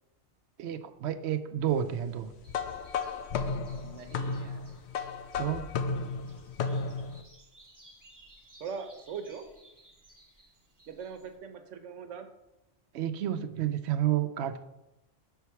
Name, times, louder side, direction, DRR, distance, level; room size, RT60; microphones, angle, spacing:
voice 1, 0.6-2.3 5.4-5.7 12.9-14.6, right 11 dB, 70° right, 10 dB, 0.8 m, -30 dB
sound 1, 2.4-11.4, right 1 dB, 15° right, 1.3 m, -59 dB
sound 2, 2.5-7.2, left 4 dB, 70° left, 0.8 m, -34 dB
voice 2, 3.8-4.8 8.6-9.5 10.9-12.3, right 6 dB, 85° right, 7 dB, 1.2 m, -41 dB
6.6 x 4.7 x 5.6 m, 0.93 s
omnidirectional pair, 1.2 m